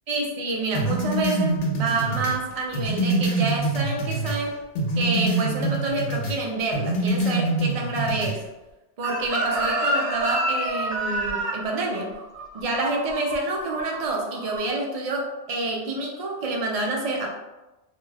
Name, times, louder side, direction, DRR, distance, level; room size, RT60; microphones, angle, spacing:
voice 1, 0.1-4.5 4.9-8.4 9.0-12.2 12.5-17.3, right 2 dB, 60° right, 0 dB, 0.3 m, -28 dB
sound 1, 0.7-4.4 4.8-6.4 6.7-8.4, right 2 dB, 85° left, 0.9 m, -25 dB
Chicken rooster, 9.0-14.0 14.3-14.6, right 2 dB, 80° right, 0.9 m, -27 dB
2.4 x 2.3 x 3.2 m, 1.0 s
omnidirectional pair, 1.2 m